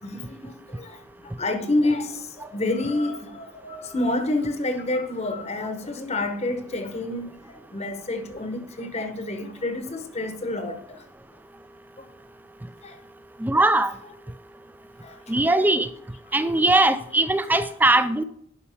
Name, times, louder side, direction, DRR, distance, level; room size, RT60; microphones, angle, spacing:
voice 1, 0.0-11.0 12.0-12.1 12.8-13.0 15.0-15.3 17.5-18.0, left 2 dB, 30° left, 0.8 m, -29 dB
voice 2, 13.4-13.9 15.3-15.9 16.3-18.2, right 2 dB, 10° right, 0.3 m, -20 dB
11.0 x 5.4 x 3.5 m
head